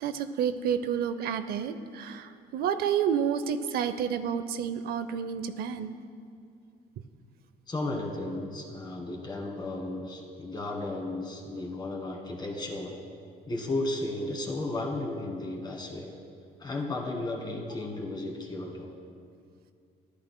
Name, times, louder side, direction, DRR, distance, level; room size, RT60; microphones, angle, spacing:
voice 1, 0.0-5.9, right 8 dB, 65° right, 10 dB, 0.5 m, -30 dB
voice 2, 7.7-13.0 13.5-16.1 16.6-18.9, left 2 dB, 25° left, 0 dB, 1.9 m, -34 dB
14.0 x 11.0 x 2.2 m, 2.2 s
cardioid pair, 110°, 17 cm